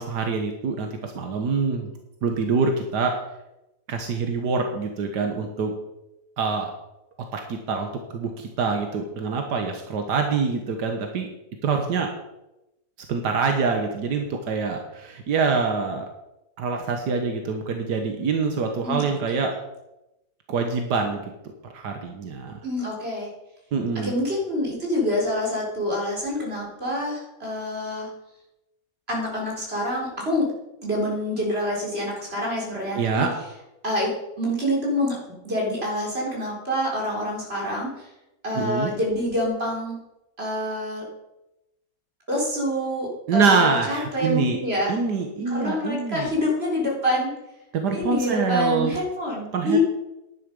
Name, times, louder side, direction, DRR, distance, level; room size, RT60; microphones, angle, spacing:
voice 1, 0.0-1.9 2.2-3.2 3.9-5.7 6.4-6.7 7.3-11.3 11.6-12.1 13.1-16.1 16.6-19.6 20.5-21.2 21.7-22.6 23.7-24.1 32.9-33.3 38.6-38.9 43.3-44.6 44.9-46.3 47.7-49.0 49.5-49.8, right 4 dB, 80° right, 4 dB, 1.8 m, -25 dB
voice 2, 22.6-23.3 24.0-28.1 29.1-30.5 30.8-33.3 33.8-35.2 35.4-38.1 38.4-40.0 40.4-41.0 42.3-45.0 45.5-47.3 47.9-49.8, left 1 dB, 35° right, -2 dB, 4.3 m, -26 dB
11.0 x 10.0 x 5.3 m, 0.92 s
omnidirectional pair, 1.8 m